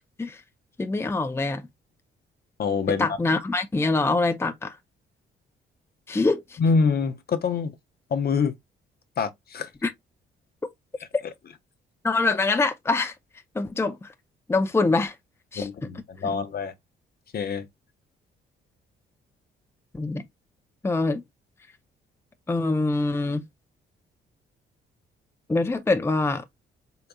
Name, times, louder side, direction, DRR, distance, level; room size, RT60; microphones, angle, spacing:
voice 1, 0.8-1.6 3.0-4.8 6.1-6.6 9.8-9.9 11.1-11.2 12.0-13.1 13.5-14.1 14.5-15.1 15.5-15.7 19.9-20.2 20.8-21.2 22.5-23.4 25.5-26.4, left 3 dB, 10° left, 0.5 m, -24 dB
voice 2, 2.6-3.1 6.6-7.7 8.1-8.5 9.2-9.7 15.6-16.7 17.3-17.7, left 5 dB, 50° left, 0.7 m, -25 dB
3.8 x 3.5 x 2.2 m
supercardioid pair, 70°, 20 cm